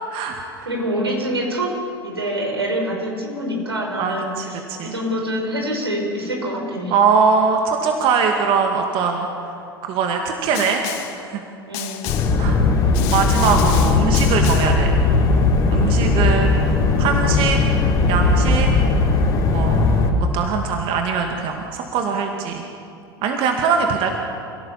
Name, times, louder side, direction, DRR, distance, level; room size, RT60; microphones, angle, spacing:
voice 1, 0.7-1.7 2.0-6.9 11.7-12.1, equal, 80° right, 0 dB, 5.6 m, -25 dB
voice 2, 4.0-4.9 6.9-9.3 9.8-11.4 12.4-12.6 13.1-15.0 15.7-17.6 18.1-18.7 19.5-19.8 20.3-22.6 23.2-24.1, right 5 dB, 40° right, 3 dB, 2.2 m, -21 dB
Snare drum, 10.5-11.2 11.7-12.4 12.9-14.8, left 12 dB, 50° left, 1.8 m, -31 dB
sound 1, 12.1-20.1, left 3 dB, 30° left, 4.6 m, -18 dB
27.5 x 17.0 x 7.4 m, 2.5 s
figure-of-eight pair, 80°, 13 cm